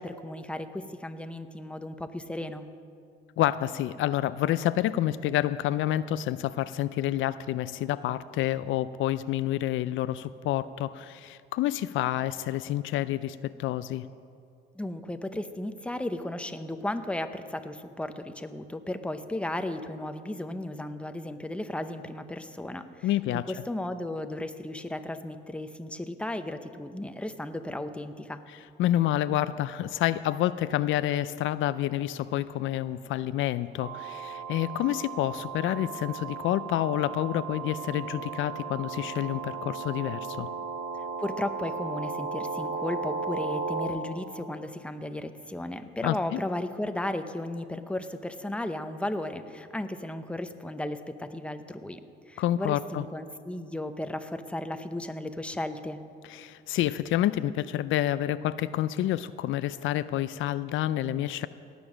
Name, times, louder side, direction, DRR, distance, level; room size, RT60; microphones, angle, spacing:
voice 1, 0.0-2.7 14.7-28.4 41.2-52.0 52.3-56.0, left 1 dB, 5° left, 9 dB, 0.8 m, -35 dB
voice 2, 3.4-14.1 23.0-23.5 28.8-40.5 46.0-46.4 52.4-53.0 56.3-61.5, left 13 dB, 80° left, 15 dB, 0.4 m, -28 dB
sound 1, 33.8-43.9, right 4 dB, 85° right, 2.0 m, -35 dB
18.0 x 7.0 x 6.2 m, 2.4 s
cardioid pair, 90°, 20 cm